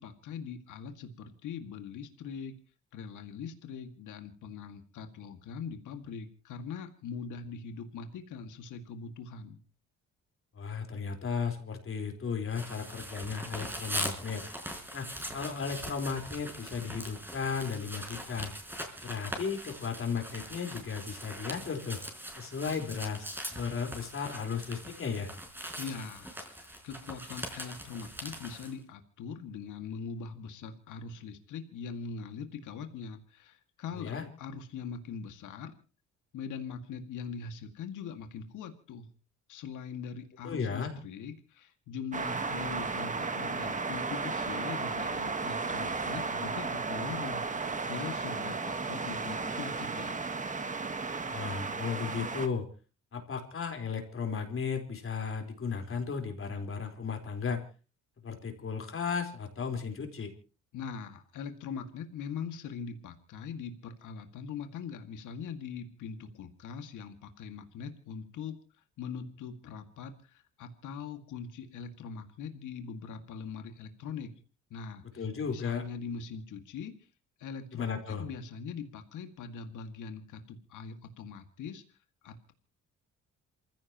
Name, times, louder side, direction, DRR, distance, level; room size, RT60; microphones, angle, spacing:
voice 1, 0.0-2.6 2.9-9.6 25.8-35.7 36.3-39.1 39.5-50.3 60.7-68.6 69.0-74.4 74.7-76.9 77.4-82.0 82.2-82.5, left 6 dB, 80° left, 7 dB, 2.1 m, -42 dB
voice 2, 10.5-14.5 14.9-18.5 19.0-22.0 22.4-23.2 23.5-25.3 33.9-34.2 40.4-40.9 51.3-52.7 53.1-57.6 58.2-60.3 75.1-75.8 77.7-78.2, left 6 dB, 45° left, 4 dB, 4.3 m, -35 dB
sound 1, 12.5-28.7, equal, 5° right, 4.3 m, -41 dB
sound 2, 42.1-52.5, right 4 dB, 25° right, 1.4 m, -34 dB
28.0 x 15.5 x 3.0 m, 0.34 s
cardioid pair, 90°, 30 cm